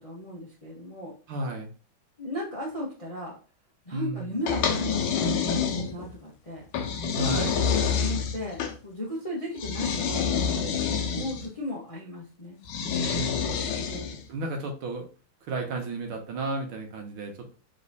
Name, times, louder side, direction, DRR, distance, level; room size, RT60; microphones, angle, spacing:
voice 1, 0.0-1.1 2.2-3.4 3.9-6.6 7.7-10.8 11.1-12.6 13.8-14.2, left 1 dB, 30° left, -4 dB, 0.6 m, -36 dB
voice 2, 1.3-1.7 3.9-4.4 7.1-7.7 13.1-13.7 14.3-15.1 15.5-17.6, right 2 dB, 75° right, 3 dB, 1.7 m, -33 dB
sound 1, 4.5-6.1 6.7-8.8 9.6-11.5 12.7-14.3, left 6 dB, 75° left, 1.6 m, -27 dB
4.0 x 3.2 x 4.0 m, 0.37 s
omnidirectional pair, 2.4 m